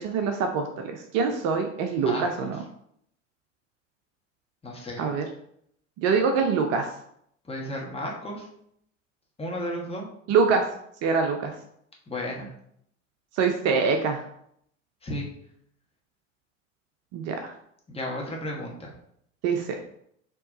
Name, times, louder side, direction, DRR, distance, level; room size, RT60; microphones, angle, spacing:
voice 1, 0.0-2.6 5.0-5.3 6.0-6.9 10.3-10.6 11.0-11.5 13.3-14.2 17.1-17.6 19.4-19.8, right 5 dB, 40° right, 4 dB, 0.6 m, -24 dB
voice 2, 1.9-2.5 4.6-5.0 7.4-8.5 9.4-10.1 12.1-12.5 15.0-15.3 17.9-18.9, left 1 dB, 15° left, -1 dB, 1.2 m, -33 dB
4.6 x 3.0 x 3.8 m, 0.71 s
hypercardioid pair, 85°, 39 cm